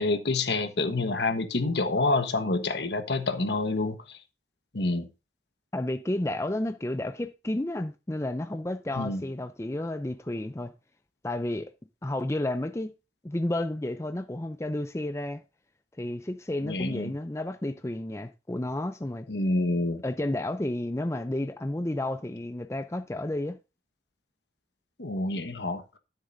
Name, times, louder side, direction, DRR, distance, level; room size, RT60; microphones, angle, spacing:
voice 1, 0.0-4.2 4.7-5.1 8.9-9.2 16.6-17.1 19.3-20.0 25.0-25.8, left 2 dB, 70° left, 1.3 m, -27 dB
voice 2, 5.7-10.7 11.2-11.7 12.0-12.9 13.2-15.4 16.0-19.2 20.0-23.6, left 1 dB, 15° left, 0.5 m, -31 dB
13.0 x 7.5 x 2.6 m
head